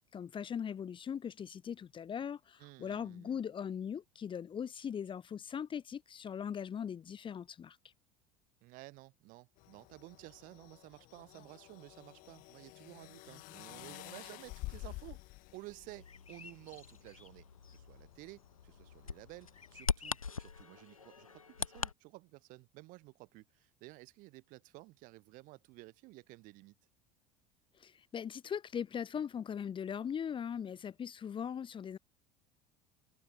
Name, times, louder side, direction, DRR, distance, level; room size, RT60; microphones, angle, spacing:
voice 1, 0.1-7.8 27.8-32.0, left 8 dB, 30° left, 2.2 m, -40 dB
voice 2, 2.6-3.5 8.6-15.2 15.5-17.4 17.7-26.7, right 22 dB, 50° right, 4.8 m, -53 dB
sound 1, 9.6-19.8, left 22 dB, 50° left, 5.3 m, -51 dB
Bird vocalization bird call bird song, 15.9-21.9, left 5 dB, 85° left, 1.1 m, -42 dB
open air
figure-of-eight pair, 70°, 17 cm